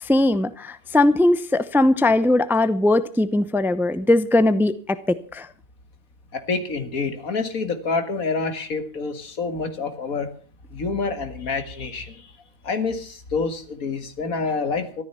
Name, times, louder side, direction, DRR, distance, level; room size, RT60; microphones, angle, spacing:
voice 1, 0.0-5.5, left 2 dB, ahead, 14 dB, 0.6 m, -20 dB
voice 2, 6.3-10.3 10.7-12.3 12.6-15.0, left 4 dB, 85° left, 8 dB, 2.4 m, -27 dB
14.0 x 13.5 x 5.8 m, 0.41 s
omnidirectional pair, 1.4 m